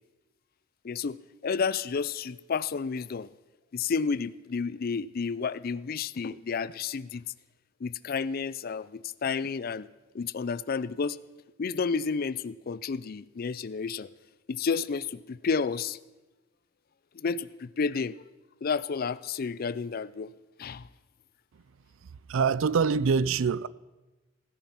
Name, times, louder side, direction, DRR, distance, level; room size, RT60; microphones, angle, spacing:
voice 1, 0.8-3.3 3.7-7.2 7.8-9.9 10.1-11.2 11.6-14.1 14.5-16.0 17.1-18.2 18.6-20.3 20.6-20.9, left 5 dB, 50° left, 0.4 m, -31 dB
voice 2, 22.3-23.7, right 5 dB, 85° right, 0.4 m, -24 dB
16.5 x 10.5 x 5.8 m
head